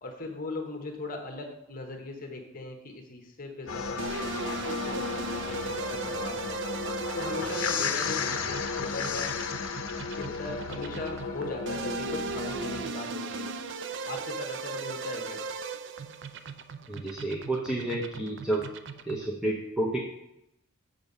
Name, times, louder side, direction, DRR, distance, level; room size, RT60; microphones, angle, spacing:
voice 1, 0.0-6.5 7.1-9.3 10.2-13.5 13.9-15.4, left 2 dB, 40° left, 2 dB, 1.0 m, -39 dB
sound 1, 3.7-12.8, left 5 dB, 60° left, 0.7 m, -33 dB
sound 2, 4.0-19.3, right 4 dB, 55° right, 0.4 m, -38 dB
voice 2, 16.9-18.6 19.0-20.0, right 1 dB, 5° right, -4 dB, 0.7 m, -30 dB
7.1 x 5.4 x 5.4 m, 0.85 s
head